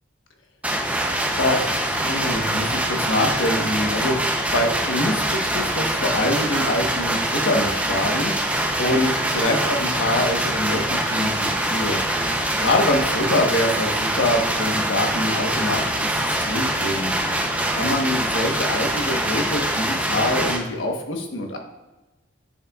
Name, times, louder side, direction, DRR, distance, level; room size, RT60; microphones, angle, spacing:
sound 1, 0.6-20.6, right 1 dB, 5° right, 0.6 m, -24 dB
voice 1, 1.4-4.2 4.5-12.0 12.5-16.1 16.4-17.1 17.7-21.6, left 1 dB, 80° left, 3 dB, 1.2 m, -25 dB
9.9 x 6.8 x 2.4 m, 1.1 s
head